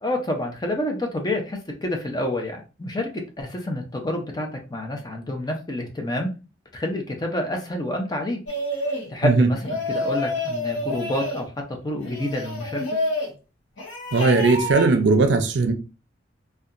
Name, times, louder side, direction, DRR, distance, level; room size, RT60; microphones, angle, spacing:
voice 1, 0.0-6.3 6.7-8.4 9.1-11.5 11.8-13.0, left 1 dB, 20° left, 0.5 m, -28 dB
sound 1, 8.5-9.1 9.6-11.4 12.0-13.3 13.8-14.9, left 1 dB, 80° left, 0.8 m, -28 dB
voice 2, 14.1-15.7, right 3 dB, 70° right, 0.4 m, -18 dB
2.8 x 2.2 x 2.4 m
head